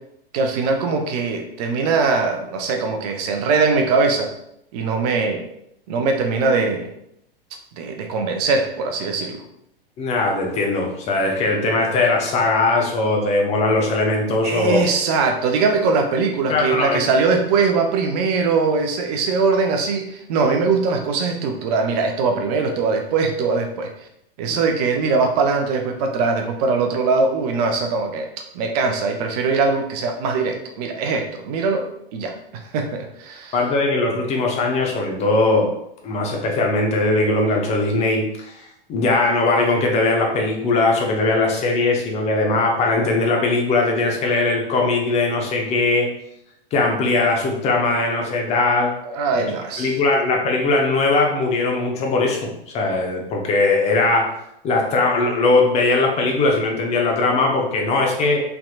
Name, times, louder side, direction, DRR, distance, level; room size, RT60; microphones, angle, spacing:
voice 1, 0.3-4.3 4.7-5.4 5.9-6.9 7.7-9.4 14.4-23.9 24.4-28.3 28.5-31.9 32.1-33.5 49.0-49.9, right 4 dB, 45° right, 4 dB, 0.6 m, -21 dB
voice 2, 10.0-14.9 16.5-17.0 24.5-24.6 33.5-35.7 36.0-46.1 46.7-48.9 49.3-49.4 49.8-52.5 52.7-54.3 54.6-58.4, left 3 dB, 20° left, 1 dB, 0.6 m, -20 dB
3.3 x 2.8 x 2.3 m, 0.77 s
figure-of-eight pair, 100°, 29 cm